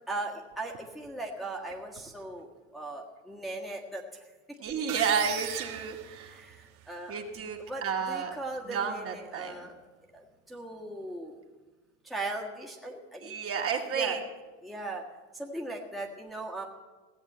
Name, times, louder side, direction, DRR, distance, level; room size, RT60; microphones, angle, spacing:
voice 1, 0.1-4.2 6.2-7.2 7.6-9.7 10.1-11.4 12.0-13.3 13.9-14.2 14.6-15.0 15.3-16.6, right 2 dB, ahead, -2 dB, 1.6 m, -38 dB
voice 2, 4.6-6.4 7.1-8.3 8.7-9.7 13.2-14.2, right 6 dB, 35° right, 1 dB, 2.0 m, -31 dB
sound 1, 4.9-6.8, right 12 dB, 65° right, 1.5 m, -37 dB
17.0 x 7.3 x 8.5 m, 1.3 s
supercardioid pair, 120°, 40 cm